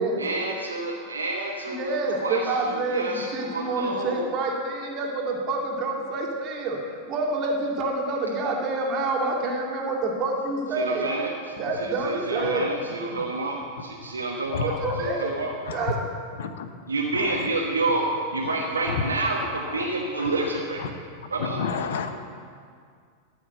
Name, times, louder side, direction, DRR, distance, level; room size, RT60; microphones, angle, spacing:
voice 1, 0.2-4.3 10.7-15.5 16.9-20.8 21.3-21.7, right 2 dB, 75° right, -1 dB, 1.1 m, -29 dB
voice 2, 1.7-11.1 11.6-12.8 14.6-15.3 15.7-15.9, right 2 dB, 35° right, -1 dB, 2.4 m, -27 dB
voice 3, 21.6-22.2, left 6 dB, 60° left, 8 dB, 0.9 m, -29 dB
13.0 x 6.5 x 7.6 m, 2.1 s
figure-of-eight pair, 90°, 0 cm